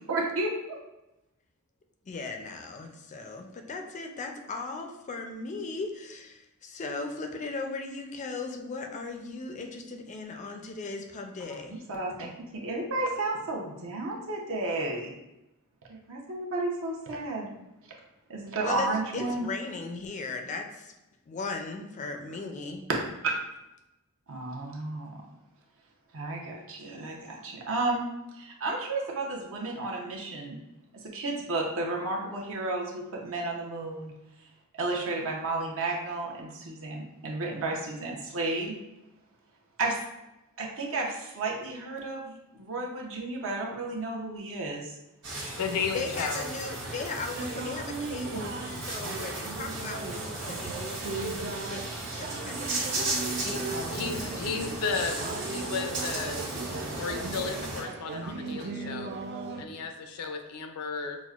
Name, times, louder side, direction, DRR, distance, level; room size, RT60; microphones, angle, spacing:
voice 1, 0.1-0.8 11.5-15.1 15.9-17.5 18.3-19.5 24.3-25.2 26.1-28.1 28.3-30.6 31.1-34.1 34.8-38.7 39.8-40.0 40.6-44.9 53.7-54.1, right 2 dB, 65° right, -1 dB, 0.7 m, -32 dB
voice 2, 2.1-11.8 18.6-20.9 21.3-22.8 45.9-51.8 52.1-53.0, left 3 dB, 35° left, 4 dB, 0.4 m, -37 dB
sound 1, 45.2-57.8, right 2 dB, 80° right, 1.4 m, -35 dB
voice 3, 45.6-46.5 53.4-59.1 59.6-61.2, left 5 dB, 85° left, 5 dB, 0.5 m, -34 dB
sound 2, 47.3-59.6, right 4 dB, 50° right, 0.3 m, -38 dB
6.0 x 2.1 x 2.4 m, 0.93 s
head